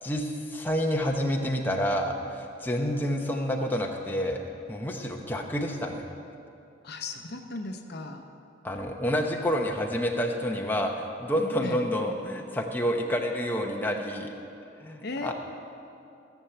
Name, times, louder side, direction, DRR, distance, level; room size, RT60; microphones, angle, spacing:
voice 1, 0.0-4.4 4.7-6.1 8.6-10.9 11.2-14.3 14.8-15.3, equal, 10° left, 1 dB, 0.8 m, -28 dB
voice 2, 6.8-8.3 11.6-11.9 15.0-15.3, left 2 dB, 60° left, 5 dB, 0.8 m, -36 dB
14.5 x 7.2 x 6.7 m, 2.6 s
head